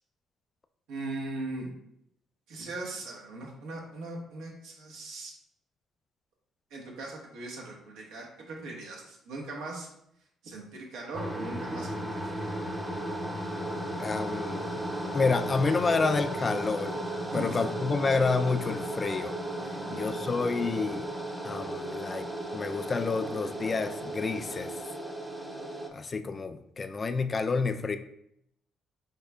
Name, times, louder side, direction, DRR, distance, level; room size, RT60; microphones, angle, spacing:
voice 1, 0.9-1.7 2.5-5.3 6.7-9.9 10.4-12.7 17.3-17.7 19.8-20.3, right 2 dB, 90° right, -2 dB, 1.1 m, -40 dB
sound 1, 11.1-25.9, right 1 dB, 10° right, 0.7 m, -35 dB
voice 2, 14.0-14.8 15.1-17.0 17.3-19.4 19.9-21.1 21.4-22.3 22.5-24.7 25.9-28.0, left 4 dB, 35° left, 9 dB, 0.3 m, -29 dB
5.4 x 3.6 x 2.2 m, 0.76 s
cardioid pair, 80°, 0 cm